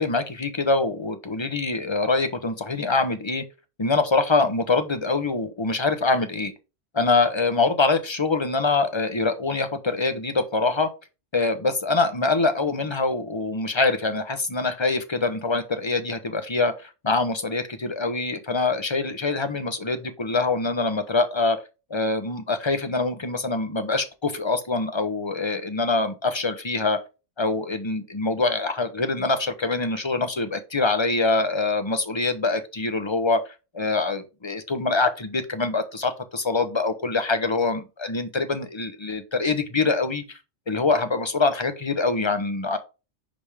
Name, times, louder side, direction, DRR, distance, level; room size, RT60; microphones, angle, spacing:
voice 1, 0.0-3.4 3.8-6.5 6.9-10.9 11.3-21.6 21.9-27.0 27.4-33.4 33.7-40.4 40.7-42.8, left 3 dB, 25° left, 0.8 m, -24 dB
10.5 x 3.5 x 3.3 m
omnidirectional pair, 1.3 m